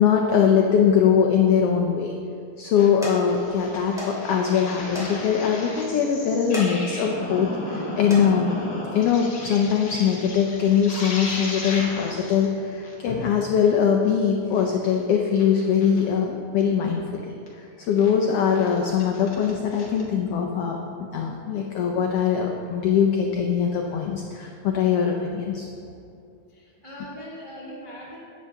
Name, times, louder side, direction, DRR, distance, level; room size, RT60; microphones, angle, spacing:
voice 1, 0.0-2.1 2.6-8.5 8.9-17.3 17.6-25.7, left 7 dB, 85° left, 2 dB, 1.3 m, -22 dB
sound 1, 2.0-2.1 2.5-2.7 3.0-3.2 4.0-4.1 4.4-4.5 4.9-5.1 5.5-5.6 6.4-6.7 7.2-7.4 7.9-8.3 9.2-9.4 9.8-9.9, equal, ahead, 1.7 m, -35 dB
sound 2, 2.7-2.9 3.3-12.5 12.8-12.9 13.2-13.3 13.6-13.7 14.0-14.1 14.5-14.9 15.4-16.1 16.6-16.7 17.5-17.6 17.8-18.1 18.5-20.0, left 2 dB, 45° left, 1.3 m, -35 dB
voice 2, 26.5-28.2, equal, 50° right, -7 dB, 0.5 m, -40 dB
10.0 x 8.1 x 3.5 m, 2.5 s
omnidirectional pair, 3.4 m